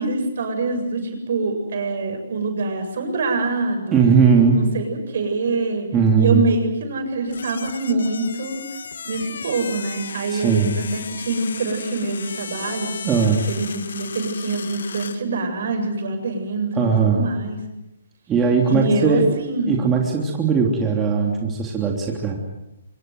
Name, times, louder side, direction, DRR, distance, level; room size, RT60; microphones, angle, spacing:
voice 1, 0.0-4.1 4.5-5.9 6.2-8.7 9.0-13.0 13.5-17.6 18.7-19.8, right 3 dB, 65° right, 5 dB, 7.6 m, -25 dB
voice 2, 3.9-4.6 5.9-6.5 10.3-10.7 13.0-13.4 16.8-17.3 18.3-19.4 19.7-22.4, right 5 dB, 15° right, -1 dB, 3.3 m, -18 dB
sound 1, 7.3-15.2, left 6 dB, 75° left, 1.7 m, -35 dB
25.0 x 24.5 x 8.0 m, 0.90 s
hypercardioid pair, 155°, 0 cm